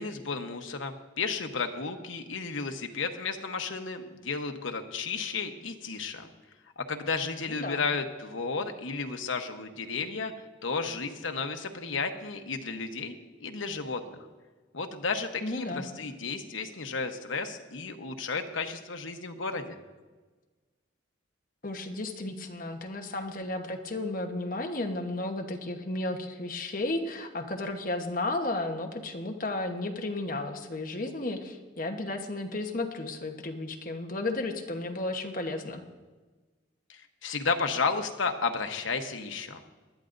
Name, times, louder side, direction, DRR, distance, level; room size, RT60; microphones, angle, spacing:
voice 1, 0.0-6.3 6.8-10.3 10.6-14.2 14.7-19.8 36.9-39.6, left 4 dB, 85° left, 5 dB, 1.0 m, -33 dB
voice 2, 7.4-7.9 15.4-15.9 21.6-35.8, left 2 dB, 45° left, 4 dB, 1.1 m, -33 dB
19.5 x 12.0 x 2.6 m, 1.3 s
head